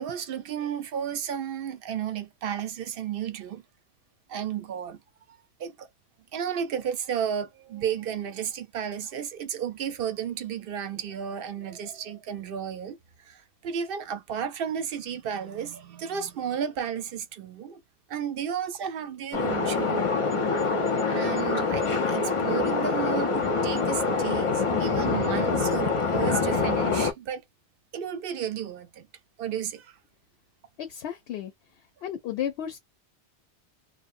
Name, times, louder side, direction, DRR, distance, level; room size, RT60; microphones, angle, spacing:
voice 1, 0.0-3.6 4.3-5.0 5.6-5.9 6.3-13.0 13.3-17.8 18.1-20.2 21.1-27.4 27.9-29.1 29.4-29.9, right 8 dB, 65° right, 0.7 m, -33 dB
sound 1, 19.3-27.1, left 4 dB, 40° left, 0.5 m, -25 dB
voice 2, 30.8-31.5 32.0-32.8, left 10 dB, 75° left, 0.8 m, -33 dB
2.7 x 2.0 x 2.4 m
omnidirectional pair, 1.1 m